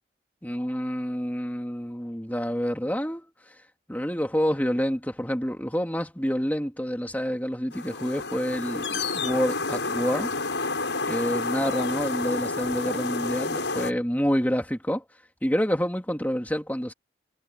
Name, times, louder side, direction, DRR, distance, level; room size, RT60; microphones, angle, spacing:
voice 1, 0.4-3.2 3.9-10.3 11.1-15.0 15.4-16.9, equal, 10° left, 3.1 m, -28 dB
sound 1, 7.7-13.9, left 3 dB, 85° left, 7.3 m, -30 dB
head